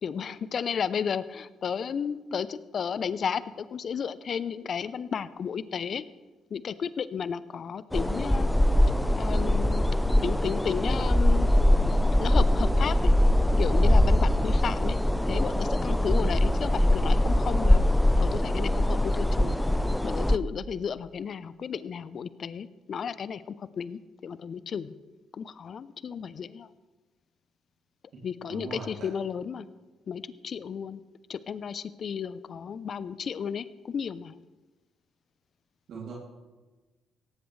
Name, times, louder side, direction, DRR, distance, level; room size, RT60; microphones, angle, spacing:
voice 1, 0.0-6.1 6.5-8.5 9.2-9.8 10.2-11.5 12.2-13.1 13.6-15.0 15.2-17.9 18.2-19.6 20.0-24.9 25.3-26.7 28.2-29.7 30.1-31.0 31.3-34.4, left 7 dB, 55° left, 16 dB, 0.6 m, -33 dB
sound 1, 7.9-20.4, left 1 dB, 5° left, 0.7 m, -22 dB
voice 2, 28.5-28.9 35.9-36.1, right 5 dB, 65° right, -3 dB, 2.8 m, -38 dB
17.0 x 15.0 x 3.3 m, 1.2 s
hypercardioid pair, 50°, 0 cm